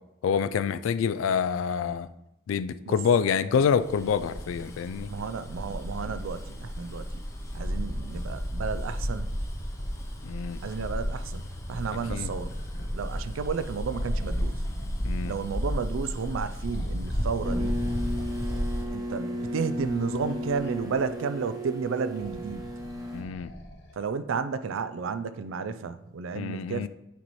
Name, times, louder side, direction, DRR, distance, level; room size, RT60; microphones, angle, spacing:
voice 1, 0.2-2.1 2.5-5.1 10.2-10.6 12.1-12.3 15.0-15.3 23.1-23.5 26.3-26.9, left 6 dB, 80° left, 15 dB, 0.3 m, -27 dB
Bus, 3.7-18.9, equal, 15° left, 0.6 m, -33 dB
voice 2, 5.1-7.2 7.5-9.3 10.6-12.6 12.9-14.6 15.2-17.8 18.9-22.6 24.0-26.9, right 5 dB, 80° right, 12 dB, 0.4 m, -32 dB
sound 1, 7.5-8.4 8.9-10.5 10.9-13.5 13.9-15.5 16.6-21.2 22.1-24.0 25.0-25.1, equal, 60° left, 1.2 m, -46 dB
sound 2, 17.4-23.2, equal, 20° right, 0.9 m, -34 dB
9.1 x 4.1 x 3.1 m, 0.91 s
head